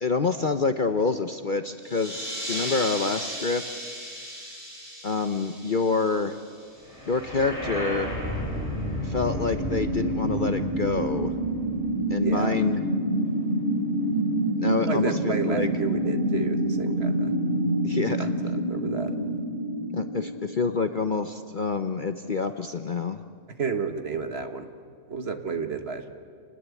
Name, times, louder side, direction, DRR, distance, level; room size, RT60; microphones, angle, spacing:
voice 1, 0.0-3.9 5.0-6.4 7.1-8.1 9.0-11.3 12.1-12.8 14.6-15.7 17.8-18.3 19.9-23.2, left 4 dB, 40° left, 8 dB, 0.8 m, -27 dB
sound 1, 1.8-7.0, equal, 25° right, 6.0 m, -36 dB
sound 2, 7.0-21.0, right 1 dB, 20° left, 5.2 m, -27 dB
voice 2, 12.2-12.6 14.8-17.3 18.2-19.1 23.6-24.7 25.1-26.1, right 5 dB, 45° right, 7 dB, 1.7 m, -31 dB
28.5 x 20.0 x 8.3 m, 2.2 s
omnidirectional pair, 1.5 m